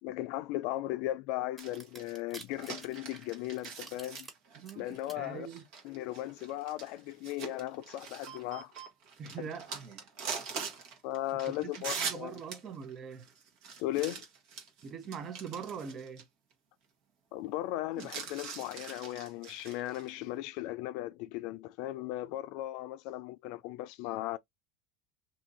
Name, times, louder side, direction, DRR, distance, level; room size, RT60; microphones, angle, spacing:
voice 1, 0.0-4.3 4.8-5.5 5.8-8.7 11.0-12.4 13.8-14.2 17.3-24.4, left 15 dB, 65° left, 0.4 m, -37 dB
sound 1, 1.6-4.3 4.7-5.1, right 2 dB, 20° right, 1.4 m, -49 dB
sound 2, 1.6-16.2 16.5-16.6 18.0-20.1, right 6 dB, 60° right, 1.2 m, -43 dB
voice 2, 5.2-5.6 9.2-9.7 11.3-11.5 12.0-13.3 14.8-16.3, right 6 dB, 35° right, 0.8 m, -42 dB
2.7 x 2.7 x 3.8 m
supercardioid pair, 105°, 0 cm